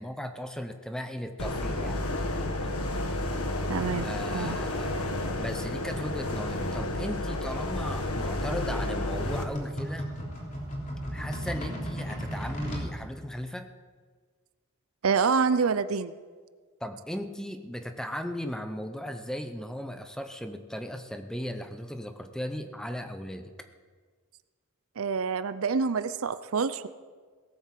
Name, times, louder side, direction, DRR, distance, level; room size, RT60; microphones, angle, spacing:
voice 1, 0.0-2.0 3.9-5.0 5.4-10.1 11.1-13.7 16.8-23.5, equal, 5° left, 7 dB, 0.7 m, -37 dB
sound 1, 1.4-9.4, left 1 dB, 85° left, 1.5 m, -31 dB
voice 2, 3.7-4.1 4.3-4.6 15.0-16.1 25.0-26.9, right 5 dB, 70° right, 13 dB, 0.6 m, -27 dB
sound 2, 7.3-12.9, equal, 35° left, 3.3 m, -36 dB
17.5 x 8.0 x 7.5 m, 1.5 s
head